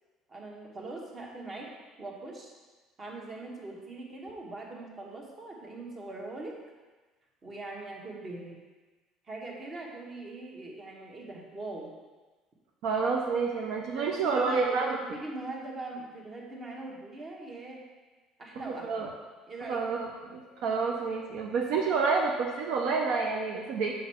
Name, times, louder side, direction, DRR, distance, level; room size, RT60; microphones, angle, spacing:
voice 1, 0.3-2.5 3.0-6.6 7.4-8.6 9.2-11.9 13.9-17.8 18.4-19.1 19.5-19.8, right 2 dB, 30° right, -1 dB, 1.2 m, -41 dB
voice 2, 12.8-15.0 18.6-19.1 19.7-23.9, right 4 dB, 75° right, 0 dB, 0.6 m, -29 dB
6.3 x 4.0 x 4.3 m, 1.3 s
cardioid pair, 115°, 0 cm